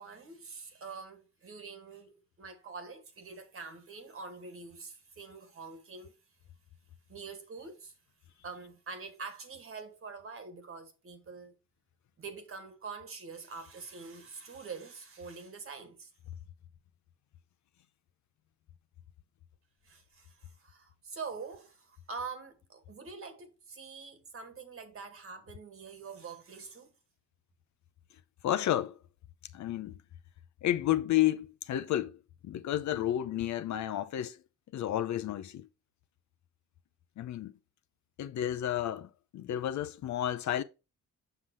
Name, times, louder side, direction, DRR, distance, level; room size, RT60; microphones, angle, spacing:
voice 1, 0.0-6.1 7.1-7.9 8.4-11.6 12.2-16.1 19.8-26.9, right 4 dB, 45° right, 1.8 m, -45 dB
voice 2, 28.4-29.0 29.5-30.0 30.6-32.2 32.4-34.4 34.7-35.7 37.2-37.5 38.2-40.6, left 12 dB, 70° left, 0.8 m, -31 dB
7.0 x 5.7 x 3.0 m
cardioid pair, 90°, 30 cm